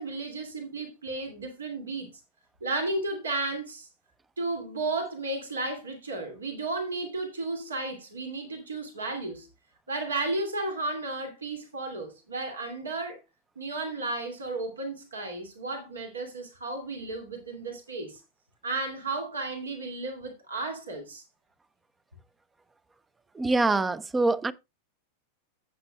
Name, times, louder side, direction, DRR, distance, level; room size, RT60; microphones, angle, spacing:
voice 1, 0.0-2.1 2.6-3.9 4.4-9.5 9.9-13.2 13.6-18.2 18.6-21.2, right 2 dB, 70° right, 2.4 m, -33 dB
voice 2, 23.3-24.5, right 3 dB, 10° right, 0.5 m, -24 dB
14.5 x 8.1 x 2.3 m
figure-of-eight pair, 90°, 0 cm